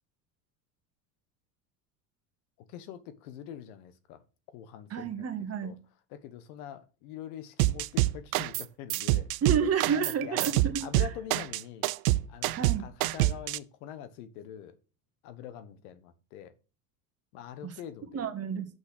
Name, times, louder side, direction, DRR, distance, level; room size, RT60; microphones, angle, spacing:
voice 1, 2.7-4.2 4.5-5.2 5.6-5.7 6.1-9.3 9.9-10.5 10.8-11.9 12.3-14.8 15.2-16.5 17.3-18.3, left 10 dB, 70° left, 1.4 m, -44 dB
voice 2, 4.9-5.8 9.4-11.1 12.5-12.9 17.6-17.7 18.1-18.8, right 7 dB, 30° right, 1.7 m, -30 dB
sound 1, 7.6-8.6 8.9-13.6, right 18 dB, 70° right, 0.6 m, -26 dB
6.3 x 5.9 x 6.0 m
hypercardioid pair, 90°, 46 cm